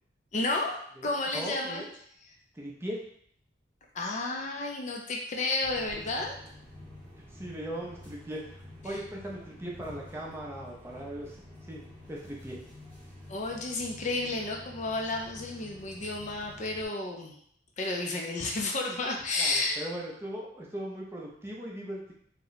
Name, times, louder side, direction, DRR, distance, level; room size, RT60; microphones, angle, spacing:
voice 1, 0.3-0.8 1.0-1.8 2.3-2.4 3.9-6.3 8.9-9.0 13.3-17.3 17.8-19.8, left 2 dB, 40° left, 0 dB, 0.4 m, -31 dB
voice 2, 1.0-1.9 2.5-3.0 7.3-12.6 19.4-22.1, right 1 dB, 15° right, -3 dB, 0.5 m, -39 dB
sound 1, 5.6-16.8, left 1 dB, 10° left, 1.0 m, -49 dB
2.9 x 2.1 x 3.9 m, 0.66 s
head